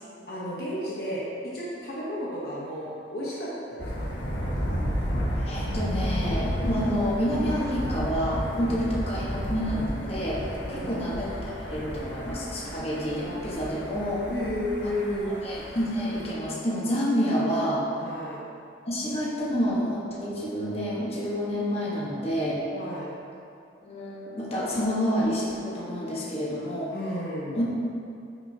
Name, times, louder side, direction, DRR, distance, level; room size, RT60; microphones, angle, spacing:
voice 1, 0.3-4.1 10.6-11.1 14.3-15.3 18.0-18.5 22.7-23.1 26.9-27.6, left 1 dB, 55° left, -6 dB, 1.1 m, -33 dB
Thunder, 3.8-16.3, equal, 75° left, 1.3 m, -32 dB
voice 2, 5.4-10.4 10.7-14.3 14.8-14.9 15.2-17.9 18.9-22.6 23.8-26.9 27.5-27.6, equal, 35° left, -6 dB, 1.3 m, -28 dB
8.9 x 6.3 x 2.8 m, 2.5 s
head